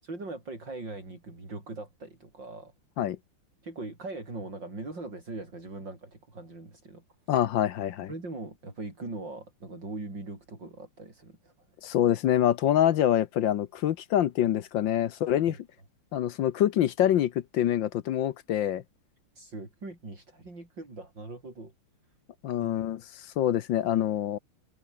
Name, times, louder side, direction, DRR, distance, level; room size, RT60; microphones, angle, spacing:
voice 1, 0.0-2.7 3.6-7.0 7.3-7.5 8.1-11.5 15.5-15.6 19.4-21.7 22.6-22.8, right 2 dB, 55° right, 7.8 m, -41 dB
voice 2, 7.3-8.1 11.8-15.6 16.1-18.8 22.4-23.0 23.4-24.4, left 11 dB, 65° left, 1.5 m, -25 dB
omnidirectional pair, 2.4 m